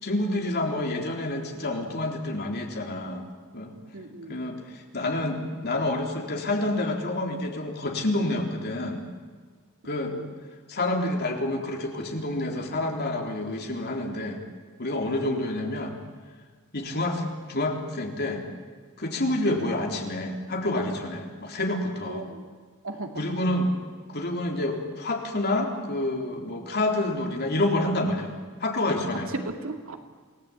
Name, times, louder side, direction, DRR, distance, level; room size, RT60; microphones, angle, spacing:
voice 1, 0.0-3.2 3.5-3.7 4.3-9.0 9.8-10.1 10.7-14.4 14.8-16.0 16.7-18.4 19.0-22.2 23.2-23.7 24.1-28.3 28.6-29.3, left 1 dB, 50° left, 1 dB, 3.8 m, -28 dB
voice 2, 3.9-4.4 10.1-10.3 22.1-22.4 22.8-23.2 29.3-30.0, right 2 dB, 65° right, 5 dB, 2.4 m, -36 dB
28.5 x 19.0 x 8.8 m, 1.5 s
head